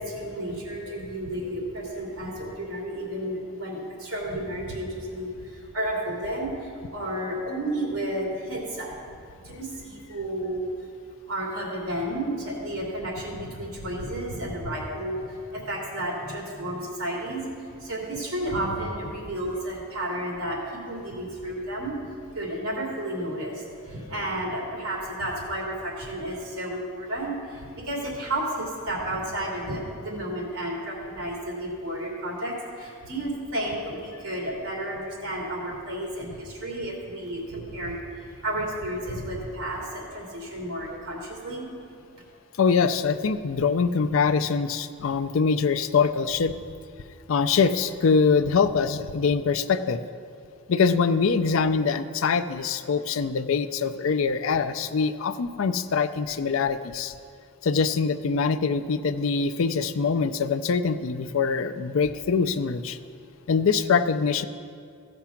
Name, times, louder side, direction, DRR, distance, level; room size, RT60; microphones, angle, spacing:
voice 1, 0.0-9.0 9.3-10.7 11.3-22.0 22.3-41.7, right 1 dB, 75° right, -2 dB, 2.8 m, -32 dB
voice 2, 42.6-46.5 47.3-50.0 50.7-57.1 57.6-63.0 63.5-64.5, left 5 dB, 65° left, 11 dB, 0.4 m, -23 dB
15.0 x 6.0 x 5.8 m, 2.3 s
head